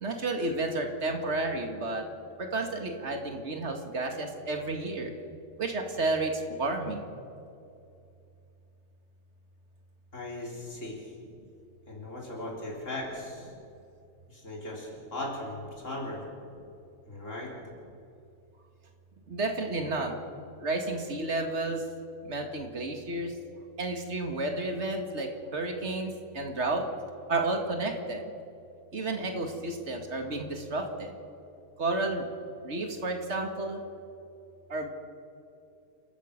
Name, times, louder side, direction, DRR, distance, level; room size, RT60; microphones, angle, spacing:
voice 1, 0.0-2.1 2.4-5.1 5.6-7.1 19.3-20.2 20.6-21.8 22.2-23.4 23.8-26.9 27.3-28.3 28.9-31.2 31.8-32.3 32.6-33.8 34.7-34.9, right 2 dB, 60° right, 4 dB, 2.3 m, -31 dB
voice 2, 10.1-11.0 11.9-13.5 14.3-16.3 17.1-17.5, left 1 dB, 70° left, -2 dB, 4.1 m, -38 dB
29.5 x 13.5 x 6.6 m, 2.6 s
omnidirectional pair, 1.3 m